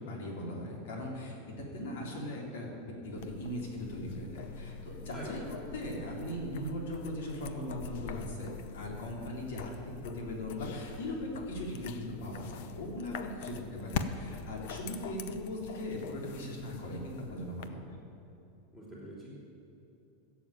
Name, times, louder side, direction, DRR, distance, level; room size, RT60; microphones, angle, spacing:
voice 1, 0.0-17.8, left 1 dB, 85° left, -1 dB, 3.7 m, -39 dB
sound 1, 3.2-17.7, left 6 dB, 60° left, 0.8 m, -44 dB
voice 2, 18.7-19.3, equal, 20° left, -7 dB, 3.6 m, -45 dB
16.0 x 7.1 x 8.9 m, 2.8 s
supercardioid pair, 165°, 0 cm